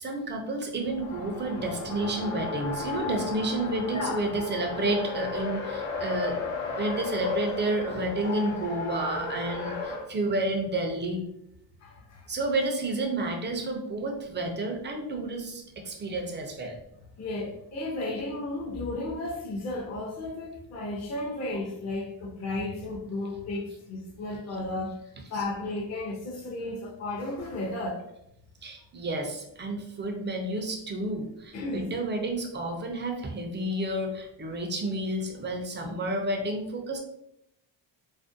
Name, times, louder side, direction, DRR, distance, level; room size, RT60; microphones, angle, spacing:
voice 1, 0.0-6.4 6.7-11.2 12.3-16.8 25.3-25.4 28.6-37.0, right 2 dB, 25° right, 2 dB, 0.4 m, -30 dB
Race car auto racing, 0.8-10.1, left 4 dB, 80° left, 0.8 m, -34 dB
voice 2, 3.9-4.3 11.8-12.2 17.2-25.0 25.3-28.0 31.5-31.9, left 2 dB, 35° left, -1 dB, 0.6 m, -34 dB
2.5 x 2.1 x 2.5 m, 0.80 s
cardioid pair, 105°, 49 cm